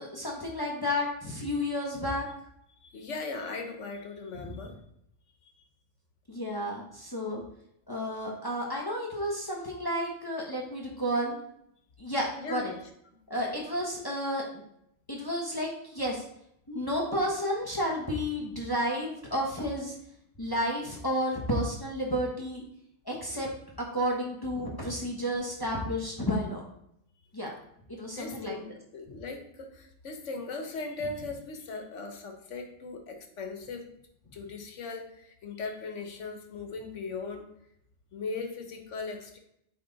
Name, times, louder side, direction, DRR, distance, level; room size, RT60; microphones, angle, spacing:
voice 1, 0.0-2.3 4.4-4.6 6.3-7.4 7.9-11.3 12.0-12.7 13.3-14.4 15.1-16.2 16.7-20.0 20.4-22.6 23.0-23.5 23.9-26.6 27.3-27.5 27.9-28.6, equal, 20° left, -2 dB, 1.1 m, -31 dB
voice 2, 2.8-4.8 5.4-5.5 12.4-12.7 28.2-33.9 34.3-37.5 38.1-39.4, left 4 dB, 80° left, 4 dB, 1.3 m, -38 dB
8.5 x 3.8 x 4.0 m, 0.75 s
omnidirectional pair, 1.2 m